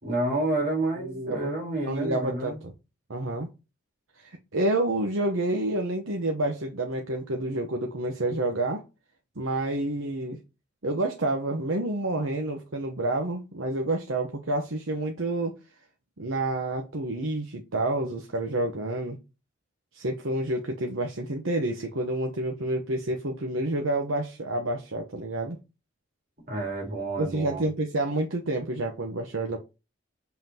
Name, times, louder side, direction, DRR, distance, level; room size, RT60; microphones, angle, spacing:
voice 1, 0.0-2.6 26.5-27.6, right 2 dB, 45° right, 4.2 m, -29 dB
voice 2, 1.0-1.5 1.9-2.7 3.1-3.5 4.2-8.8 9.4-10.4 10.8-15.6 16.2-19.2 19.9-25.6 27.2-29.6, right 2 dB, 85° right, 1.0 m, -29 dB
7.3 x 5.7 x 2.9 m
head